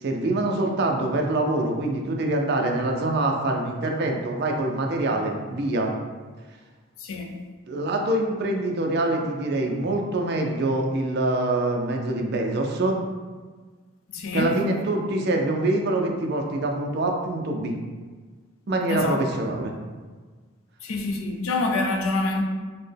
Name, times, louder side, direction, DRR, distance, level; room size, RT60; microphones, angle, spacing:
voice 1, 0.0-5.9 7.7-13.0 14.3-17.8 18.7-19.7, right 2 dB, 50° right, 0.4 m, -25 dB
voice 2, 7.0-7.4 14.1-14.6 18.9-19.2 20.8-22.4, left 2 dB, 75° left, 0.5 m, -26 dB
4.2 x 2.1 x 3.3 m
head